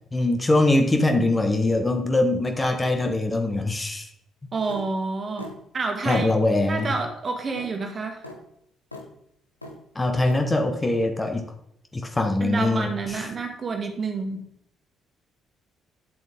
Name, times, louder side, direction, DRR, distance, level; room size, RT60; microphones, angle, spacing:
voice 1, 0.1-4.1 6.0-6.9 9.9-11.4 11.9-13.2, left 2 dB, 20° left, 5 dB, 1.3 m, -22 dB
voice 2, 4.5-6.3 6.7-8.3 12.4-14.4, right 4 dB, 35° right, 4 dB, 1.9 m, -29 dB
sound 1, 4.7-4.9 5.4-5.6 6.1-6.3 6.9-7.0 7.5-7.7 8.2-8.4 8.9-9.1 9.6-9.8 10.3-10.4, left 2 dB, 90° left, 0.9 m, -38 dB
9.9 x 7.6 x 3.6 m, 0.73 s
figure-of-eight pair, 45°, 0 cm